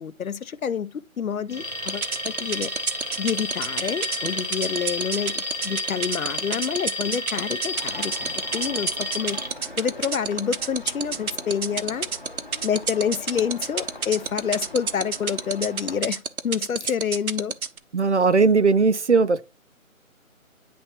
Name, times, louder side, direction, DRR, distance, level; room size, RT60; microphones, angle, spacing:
voice 1, 0.0-2.7 3.2-9.4 9.8-12.1 12.6-17.5, left 7 dB, 80° left, 0.6 m, -28 dB
Alarm, 1.5-9.5, left 1 dB, 30° right, 0.8 m, -31 dB
sound 1, 1.9-17.8, right 6 dB, 90° right, 0.9 m, -27 dB
sound 2, 7.7-16.0, left 2 dB, 35° left, 0.9 m, -42 dB
voice 2, 17.9-19.4, right 4 dB, 55° right, 0.5 m, -18 dB
10.0 x 3.4 x 2.8 m
figure-of-eight pair, 180°, 42 cm